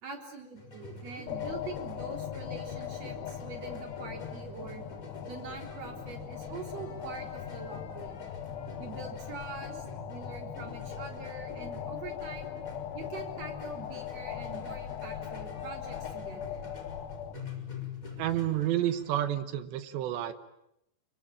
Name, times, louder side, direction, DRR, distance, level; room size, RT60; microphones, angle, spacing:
voice 1, 0.0-4.8 5.3-8.3 8.8-12.5 12.9-16.6, right 4 dB, 35° right, 3 dB, 4.4 m, -44 dB
sound 1, 0.6-19.1, left 2 dB, 15° left, 5.2 m, -46 dB
sound 2, 1.3-17.3, left 10 dB, 80° left, 3.6 m, -40 dB
voice 2, 18.2-20.3, right 12 dB, 75° right, 11 dB, 3.2 m, -30 dB
26.5 x 24.0 x 8.8 m, 0.82 s
omnidirectional pair, 5.3 m